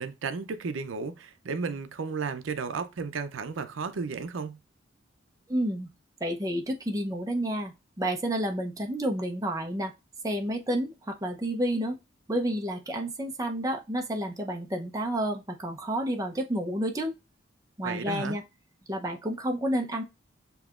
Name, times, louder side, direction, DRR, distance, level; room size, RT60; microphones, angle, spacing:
voice 1, 0.0-4.6 17.8-18.4, right 5 dB, 85° right, 0.5 m, -33 dB
voice 2, 5.5-5.9 6.2-9.9 10.2-12.0 12.3-17.1 17.8-18.4 18.9-20.0, right 1 dB, 15° right, 0.6 m, -30 dB
7.0 x 2.8 x 2.4 m
head